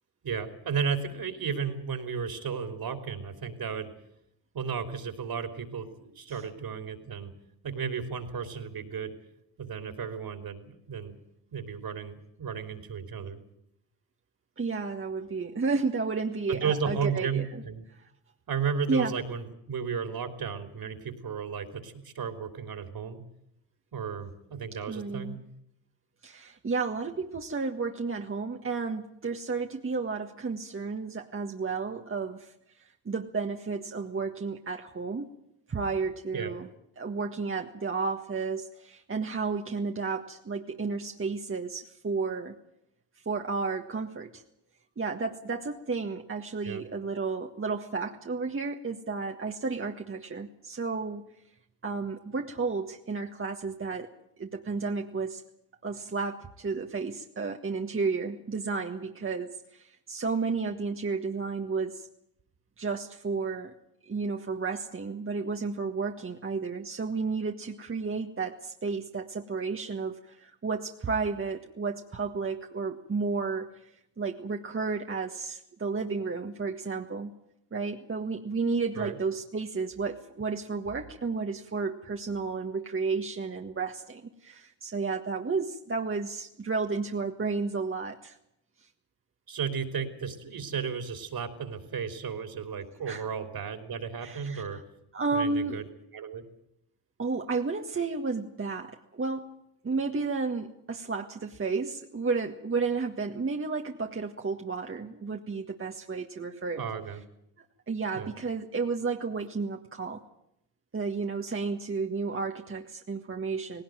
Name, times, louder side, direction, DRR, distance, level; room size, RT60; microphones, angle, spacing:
voice 1, 0.2-3.9 4.5-7.3 7.6-9.1 9.6-11.1 11.5-13.4 16.5-17.8 18.5-23.2 23.9-25.4 36.3-36.6 46.6-46.9 79.0-79.2 89.5-94.8 95.3-95.8 96.1-96.4 106.8-107.2 108.1-108.3, right 6 dB, 50° right, 8 dB, 3.6 m, -34 dB
voice 2, 14.6-17.5 18.9-19.1 24.9-25.4 26.2-32.5 32.8-35.3 35.7-36.7 37.0-42.6 43.3-44.4 45.0-51.3 51.8-54.1 54.4-55.4 55.8-62.1 62.8-63.7 64.1-73.7 74.2-77.4 77.7-88.4 93.1-93.3 94.2-94.8 95.1-95.9 97.2-99.5 99.8-106.8 107.6-110.2 110.9-113.8, right 4 dB, 30° right, 3 dB, 1.7 m, -32 dB
18.5 x 18.0 x 9.2 m, 0.78 s
supercardioid pair, 70°, 45 cm